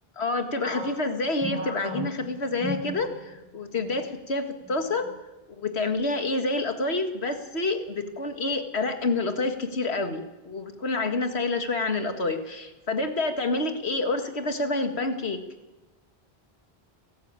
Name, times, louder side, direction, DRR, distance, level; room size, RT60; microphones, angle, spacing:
voice 1, 0.2-5.1 5.6-15.4, left 3 dB, 90° left, 7 dB, 2.2 m, -28 dB
sound 1, 0.6-3.5 3.8-4.0 4.6-5.1, left 1 dB, 10° left, 6.8 m, -36 dB
29.0 x 13.5 x 8.9 m, 1.1 s
omnidirectional pair, 1.1 m